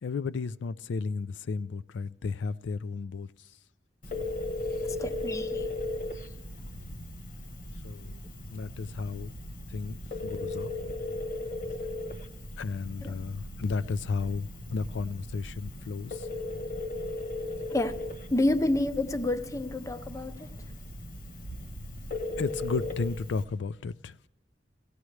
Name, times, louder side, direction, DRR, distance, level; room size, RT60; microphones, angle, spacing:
voice 1, 0.0-3.3 4.1-4.4 7.8-8.2 8.5-9.3 9.7-10.7 12.6-16.3 22.4-24.1, left 4 dB, 80° left, 0.4 m, -33 dB
Telephone, 4.0-23.4, left 2 dB, 45° left, 1.1 m, -37 dB
voice 2, 4.8-5.7 6.1-6.3 13.0-13.2 17.7-18.0 18.3-20.6, left 2 dB, 15° left, 0.5 m, -29 dB
17.5 x 16.5 x 3.2 m
head